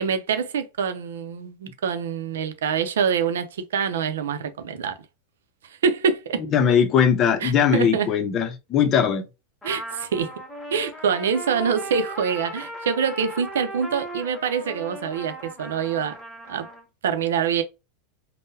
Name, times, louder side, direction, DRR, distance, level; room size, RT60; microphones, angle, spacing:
voice 1, 0.0-5.0 5.6-6.4 7.4-8.1 9.6-10.3 10.7-16.2 16.5-16.7 17.0-17.6, right 6 dB, 85° right, 0.5 m, -25 dB
voice 2, 6.5-9.2, left 7 dB, 35° left, 0.7 m, -20 dB
Trumpet, 9.6-16.8, right 1 dB, 10° left, 0.9 m, -37 dB
3.6 x 2.1 x 2.7 m
hypercardioid pair, 120°, 0 cm